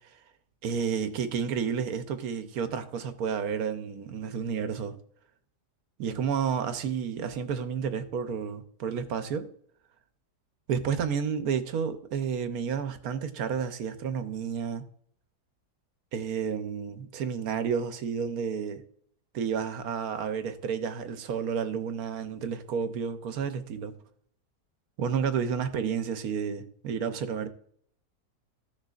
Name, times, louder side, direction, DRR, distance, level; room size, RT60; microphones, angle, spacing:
voice 1, 0.6-5.0 6.0-9.5 10.7-14.9 16.1-18.8 19.3-24.0 25.0-27.5, right 7 dB, 70° right, 1.2 m, -31 dB
15.5 x 6.5 x 2.4 m
omnidirectional pair, 1.7 m